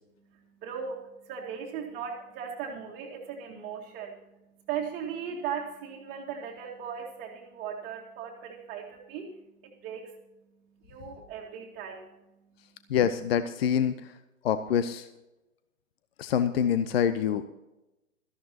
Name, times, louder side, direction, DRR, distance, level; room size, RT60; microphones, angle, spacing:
voice 1, 0.3-4.4 4.6-9.4 9.6-10.1 10.8-12.1, right 7 dB, 20° right, -4 dB, 2.0 m, -38 dB
voice 2, 12.9-14.2 14.4-15.1 16.2-17.4, left 8 dB, 45° left, 12 dB, 0.8 m, -26 dB
17.5 x 14.0 x 2.9 m, 0.97 s
figure-of-eight pair, 120°, 42 cm